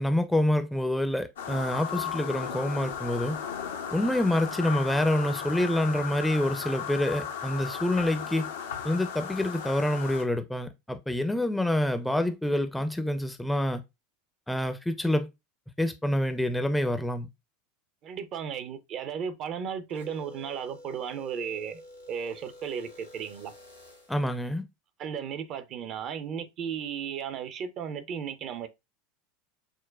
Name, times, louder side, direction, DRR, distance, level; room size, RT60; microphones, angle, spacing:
voice 1, 0.0-3.4 3.9-8.5 8.8-13.8 14.5-15.3 15.8-17.3 24.1-24.6, left 1 dB, 5° left, 0.5 m, -27 dB
sound 1, 1.4-10.2, left 7 dB, 70° left, 0.5 m, -36 dB
voice 2, 18.0-21.8 22.1-23.5 25.0-28.7, right 7 dB, 40° right, 0.5 m, -35 dB
sound 2, 19.9-24.3, left 1 dB, 85° left, 0.9 m, -50 dB
6.0 x 2.1 x 2.3 m
figure-of-eight pair, 75°, 0 cm